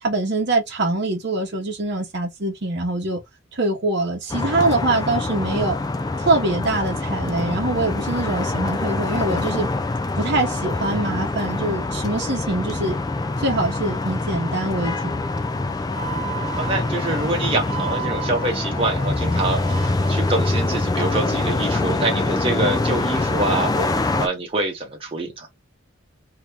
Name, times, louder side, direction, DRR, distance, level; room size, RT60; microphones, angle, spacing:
voice 1, 0.0-3.2 3.5-5.7 6.2-9.7 10.2-13.0 13.4-15.2, right 2 dB, 55° right, 0.9 m, -24 dB
sound 1, 4.3-24.3, left 2 dB, 20° left, 0.3 m, -24 dB
Wind instrument woodwind instrument, 15.9-20.1, right 12 dB, 5° right, 0.9 m, -35 dB
voice 2, 16.5-25.5, right 2 dB, 30° right, 1.1 m, -25 dB
2.8 x 2.5 x 3.5 m
head